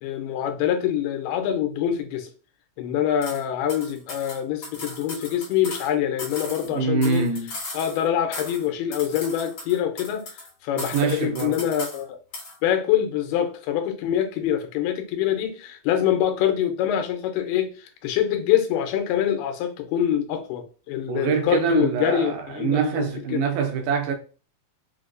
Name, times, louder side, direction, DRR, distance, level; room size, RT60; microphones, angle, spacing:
voice 1, 0.0-2.3 2.8-7.2 7.7-12.2 12.6-23.4, left 10 dB, 85° left, 2.6 m, -25 dB
sound 1, 3.2-3.4 3.7-5.9 6.2-8.0 8.3-8.7 8.9-10.5 10.8-12.0 12.3-12.6, left 2 dB, 50° left, 1.8 m, -37 dB
voice 2, 6.6-7.5 10.7-11.6 21.1-24.1, right 5 dB, 80° right, 2.2 m, -25 dB
5.8 x 2.2 x 2.4 m
omnidirectional pair, 4.4 m